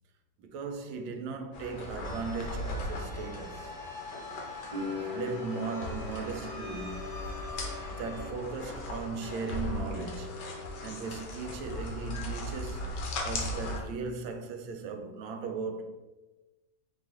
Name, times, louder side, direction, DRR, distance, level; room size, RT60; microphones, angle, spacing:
voice 1, 0.4-3.8 4.8-7.2 7.9-10.5 10.8-12.9 13.2-15.9, right 4 dB, 75° right, 1.3 m, -38 dB
sound 1, 1.5-13.8, left 1 dB, 65° left, 1.3 m, -38 dB
sound 2, 2.0-8.3, left 2 dB, 80° left, 0.6 m, -45 dB
sound 3, 4.7-11.5 11.8-12.7, left 4 dB, 30° right, 0.7 m, -43 dB
4.0 x 3.2 x 3.6 m
omnidirectional pair, 2.2 m